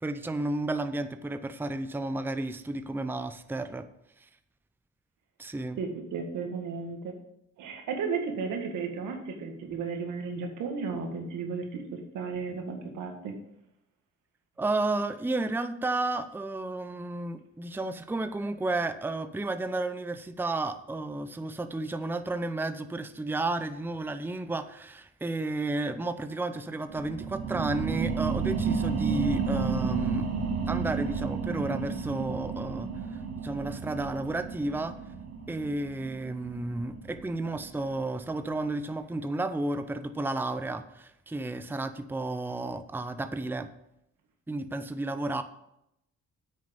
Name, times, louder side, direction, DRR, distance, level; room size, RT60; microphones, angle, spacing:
voice 1, 0.0-3.8 4.2-4.3 5.4-5.8 14.6-30.3 30.7-35.0 35.5-43.7 44.5-45.4, right 2 dB, 5° right, 10 dB, 0.6 m, -32 dB
voice 2, 5.8-7.2 7.6-11.8 12.1-13.3, right 5 dB, 85° right, 4 dB, 2.0 m, -34 dB
sound 1, 26.9-38.0 38.5-38.6, right 5 dB, 55° right, 1.5 m, -32 dB
8.9 x 6.5 x 5.3 m, 0.80 s
cardioid pair, 90°, 30 cm